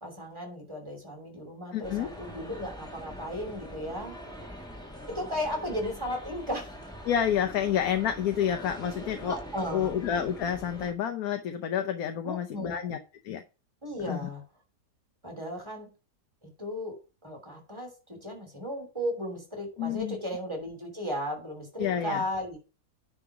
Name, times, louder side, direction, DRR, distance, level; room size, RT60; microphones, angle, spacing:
voice 1, 0.0-4.2 5.1-6.7 9.2-10.0 12.2-12.8 13.8-14.4 15.2-15.9 16.4-17.0 17.2-22.6, equal, 15° right, 3 dB, 2.9 m, -35 dB
voice 2, 1.7-2.1 7.0-9.4 9.7-13.0 13.2-13.4 14.1-14.3 19.8-20.2 21.8-22.2, left 9 dB, 70° left, 8 dB, 1.1 m, -29 dB
sound 1, 1.8-10.9, equal, 5° left, 1.8 m, -43 dB
9.8 x 3.9 x 5.9 m, 0.32 s
omnidirectional pair, 1.7 m